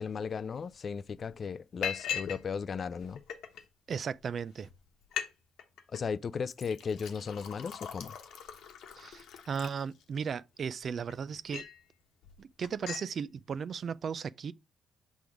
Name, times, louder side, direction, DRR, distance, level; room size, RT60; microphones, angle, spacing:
voice 1, 0.0-3.2 5.9-8.2, left 6 dB, 45° left, 0.3 m, -36 dB
Liquid, 0.7-0.8 1.1-1.3 1.8-2.4 2.7-3.6 4.3-4.4 4.7-4.8 5.0-5.3 5.6-6.0 6.5-10.3 10.8-11.8 12.2-12.4 12.6-13.1, left 8 dB, 80° left, 1.1 m, -40 dB
voice 2, 3.9-4.7 9.0-11.7 12.4-14.5, right 6 dB, 50° right, 0.3 m, -36 dB
6.1 x 3.5 x 4.8 m
cardioid pair, 90°, 0 cm